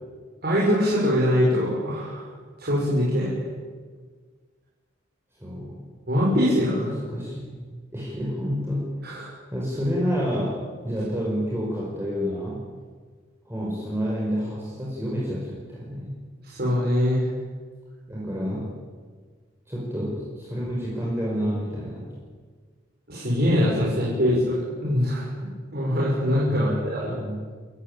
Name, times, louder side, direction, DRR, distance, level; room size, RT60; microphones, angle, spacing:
voice 1, 0.4-2.3 2.6-3.4 6.1-6.9 9.0-9.3 16.4-17.3 23.1-27.2, equal, 50° right, -6 dB, 6.4 m, -23 dB
voice 2, 5.4-5.8 6.7-7.6 7.9-8.9 9.5-10.6 10.8-12.6 13.5-16.1 18.1-18.7 19.7-22.1 26.5-26.8 27.2-27.5, equal, 15° right, -5 dB, 5.5 m, -29 dB
28.0 x 15.5 x 9.2 m, 1.5 s
head